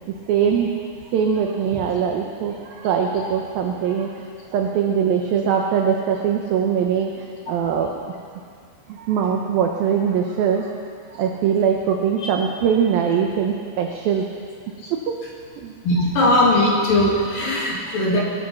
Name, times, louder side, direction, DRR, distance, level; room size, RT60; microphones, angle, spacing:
voice 1, 0.3-0.7 1.1-4.3 4.5-8.0 8.9-10.7 11.1-14.2 14.9-15.1 15.6-15.7 17.7-17.8, right 7 dB, 80° right, 2 dB, 2.1 m, -22 dB
voice 2, 15.8-18.2, left 1 dB, 55° left, -3 dB, 3.7 m, -19 dB
20.0 x 11.5 x 5.9 m, 2.2 s
omnidirectional pair, 5.4 m